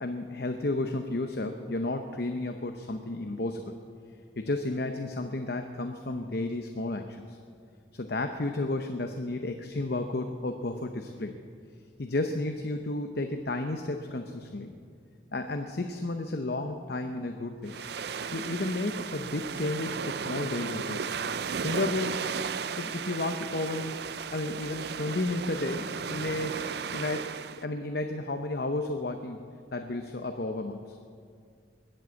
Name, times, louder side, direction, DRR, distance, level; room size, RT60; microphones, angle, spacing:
voice 1, 0.0-3.7 4.4-7.4 7.9-11.4 12.0-14.7 15.3-17.8 18.3-21.2 21.6-22.3 22.8-24.0 24.3-27.3 27.6-29.4 29.7-31.0, left 2 dB, 55° left, 6 dB, 0.8 m, -32 dB
sound 1, 17.7-27.6, right 6 dB, 55° right, 0.5 m, -35 dB
21.5 x 7.8 x 8.3 m, 2.1 s
head